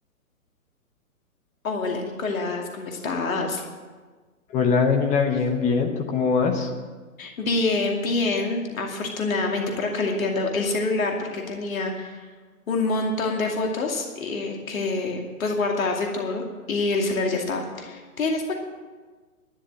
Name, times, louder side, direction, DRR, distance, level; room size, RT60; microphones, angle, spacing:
voice 1, 1.6-3.6 7.2-12.3 12.7-18.6, left 3 dB, 60° left, 1 dB, 2.5 m, -26 dB
voice 2, 4.5-6.7, left 5 dB, 15° left, 3 dB, 1.2 m, -22 dB
12.0 x 10.5 x 8.8 m, 1.4 s
figure-of-eight pair, 130°, 45 cm